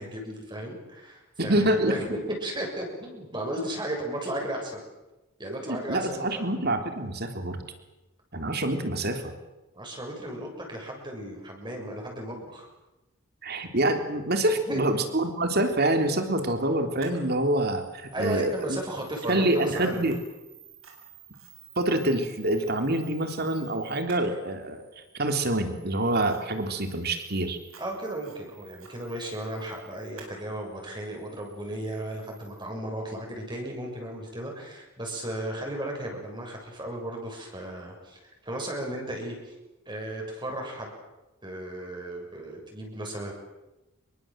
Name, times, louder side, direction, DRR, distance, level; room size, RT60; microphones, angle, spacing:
voice 1, 0.0-2.0 2.4-4.8 5.4-6.5 9.7-12.7 14.7-14.8 18.1-20.1 27.8-39.5 39.8-40.9 41.4-43.3, right 1 dB, 20° right, 1 dB, 6.8 m, -35 dB
voice 2, 1.4-2.0 5.7-7.6 8.3-9.3 13.4-18.8 19.3-20.2 21.8-24.8 25.1-27.6, right 1 dB, 50° right, 6 dB, 3.5 m, -26 dB
Camera, 17.0-32.6, right 7 dB, 80° right, 7.6 m, -53 dB
27.0 x 23.5 x 7.7 m, 1.0 s
head